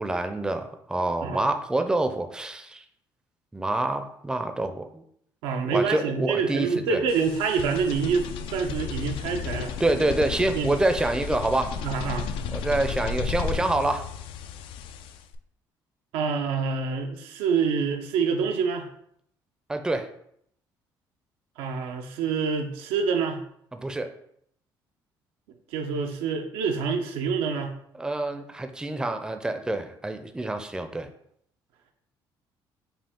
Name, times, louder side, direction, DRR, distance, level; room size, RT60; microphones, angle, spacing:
voice 1, 0.0-2.8 3.5-5.0 5.6-7.0 9.8-11.8 12.5-14.1 19.7-20.1 23.7-24.1 27.9-31.1, right 2 dB, 10° right, 7 dB, 0.4 m, -27 dB
voice 2, 5.4-9.7 10.5-10.7 11.8-12.3 16.1-18.9 21.6-23.4 25.7-27.7, right 5 dB, 90° right, 4 dB, 0.6 m, -26 dB
sound 1, 7.1-15.3, left 6 dB, 80° left, 0.4 m, -33 dB
5.4 x 2.4 x 3.5 m, 0.69 s
cardioid pair, 90°, 9 cm